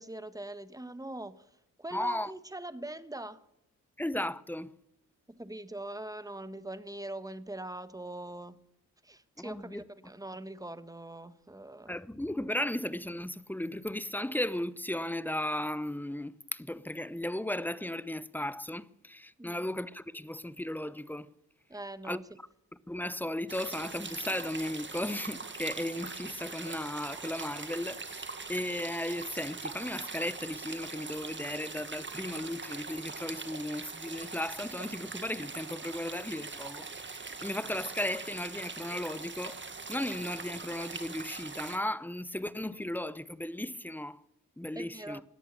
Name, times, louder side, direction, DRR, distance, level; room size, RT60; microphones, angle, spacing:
voice 1, 0.0-1.5 1.8-3.4 5.4-8.6 9.0-11.9 19.4-19.7 21.7-22.3 44.7-45.2, right 1 dB, 10° right, 1.5 m, -42 dB
voice 2, 1.9-2.3 4.0-4.7 9.4-9.8 11.9-21.3 22.0-22.2 22.9-39.6 39.9-44.2 44.6-45.2, left 1 dB, 5° left, 0.9 m, -35 dB
sound 1, 23.5-41.8, right 4 dB, 30° right, 1.8 m, -42 dB
17.5 x 10.5 x 6.9 m
supercardioid pair, 50°, 35 cm